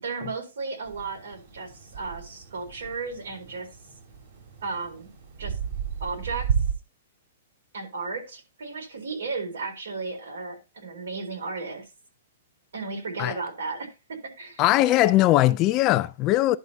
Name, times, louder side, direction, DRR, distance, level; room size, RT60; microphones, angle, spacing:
voice 1, 0.0-3.7 4.6-5.1 5.4-5.5 6.0-6.5 7.7-11.9 12.7-14.6, right 4 dB, 85° right, 4.1 m, -34 dB
sound 1, 0.8-6.7, right 7 dB, 50° right, 2.5 m, -33 dB
voice 2, 14.6-16.6, left 16 dB, 30° left, 0.5 m, -20 dB
11.0 x 3.6 x 5.3 m
hypercardioid pair, 150°, 0 cm